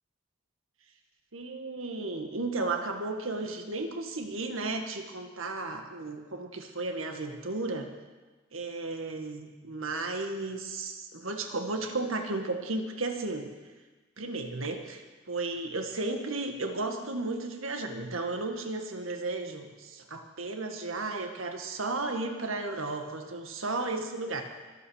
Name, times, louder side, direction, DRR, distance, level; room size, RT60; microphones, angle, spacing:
voice 1, 1.3-7.9 8.5-13.5 14.2-24.4, right 3 dB, 75° right, 5 dB, 1.9 m, -34 dB
24.5 x 8.8 x 6.5 m, 1.3 s
head